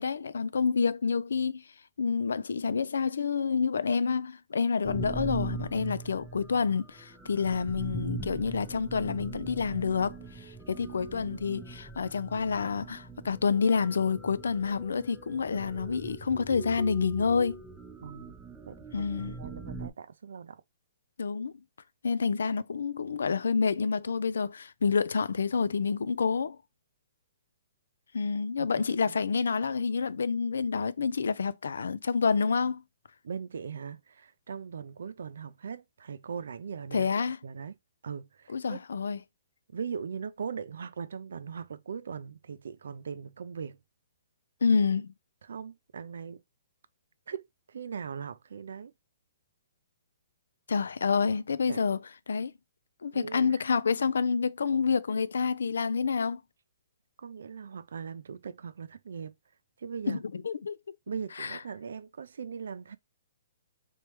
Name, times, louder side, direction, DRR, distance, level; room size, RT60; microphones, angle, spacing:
voice 1, 0.0-1.6 2.0-17.6 18.9-19.3 21.2-21.5 22.0-26.6 28.1-32.8 36.9-37.4 38.5-39.2 44.6-45.1 50.7-52.0 52.3-52.5 53.0-56.4 60.1-60.8 61.4-61.6, left 5 dB, 90° left, 0.3 m, -28 dB
sound 1, 4.9-19.9, right 3 dB, 5° right, 0.5 m, -41 dB
voice 2, 18.0-18.4 18.6-19.1 19.4-20.6 29.0-29.2 33.2-37.1 37.4-37.8 38.0-38.8 39.7-43.8 45.4-46.4 47.3-48.9 51.7-51.8 53.1-53.6 57.2-59.3 59.8-60.2 61.1-63.0, right 6 dB, 80° right, 0.4 m, -40 dB
3.2 x 3.0 x 3.0 m
hypercardioid pair, 155°, 0 cm